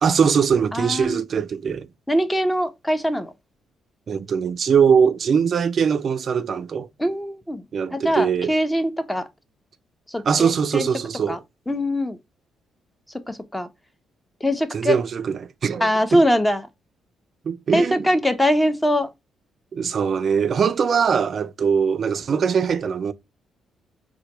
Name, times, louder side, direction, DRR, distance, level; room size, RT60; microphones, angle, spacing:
voice 1, 0.0-1.9 4.1-6.9 7.7-8.5 10.3-11.4 14.7-16.2 17.5-18.1 19.7-23.1, right 6 dB, 50° right, 0.3 m, -21 dB
voice 2, 0.7-1.2 2.1-3.3 7.0-7.6 7.9-9.3 10.1-10.9 11.3-11.4 11.7-12.2 13.3-13.7 14.4-15.0 15.8-16.7 17.7-19.1, equal, 10° left, 0.5 m, -22 dB
4.2 x 2.2 x 2.9 m
cardioid pair, 90°, 0 cm